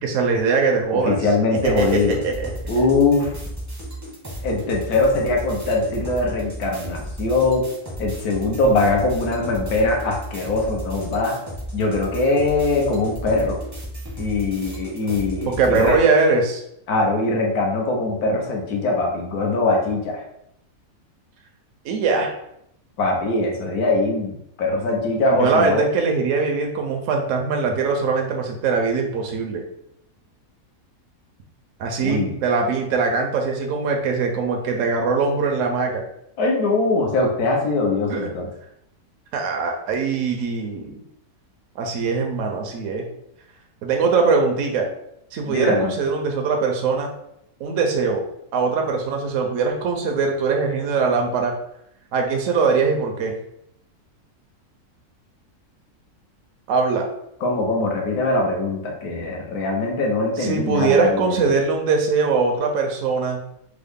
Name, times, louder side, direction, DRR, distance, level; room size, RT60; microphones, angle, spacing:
voice 1, 0.0-1.1 1.6-2.5 15.5-16.6 21.8-22.3 25.3-29.6 31.8-36.0 38.1-38.3 39.3-41.0 41.8-43.0 43.8-44.9 45.3-47.1 47.6-48.2 48.5-51.5 52.1-53.3 56.7-57.1 60.4-63.4, right 4 dB, 70° right, 2 dB, 0.8 m, -21 dB
voice 2, 0.9-2.2 2.7-3.3 4.4-7.7 8.0-11.4 11.7-13.6 14.2-16.0 16.9-20.2 23.0-25.8 32.0-32.3 36.4-38.5 45.5-45.9 57.4-61.4, left 2 dB, 75° left, 0 dB, 1.3 m, -22 dB
sound 1, 1.5-16.0, right 1 dB, 20° right, 0.5 m, -34 dB
3.6 x 2.0 x 3.5 m, 0.77 s
omnidirectional pair, 1.6 m